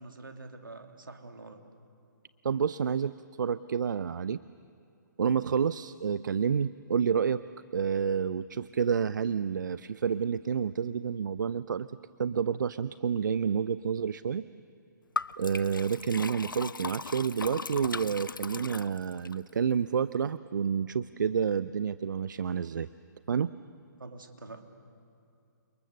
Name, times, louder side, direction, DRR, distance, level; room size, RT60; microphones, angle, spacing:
voice 1, 0.0-1.6 24.0-24.7, right 3 dB, 85° right, 5 dB, 2.6 m, -46 dB
voice 2, 2.4-4.4 5.2-7.4 7.7-11.9 12.2-14.4 15.4-22.9 23.3-23.5, right 7 dB, 65° right, 16 dB, 0.6 m, -29 dB
Liquid, 15.2-19.4, left 4 dB, 85° left, 0.6 m, -38 dB
30.0 x 27.5 x 6.8 m, 2.7 s
figure-of-eight pair, 130°, 11 cm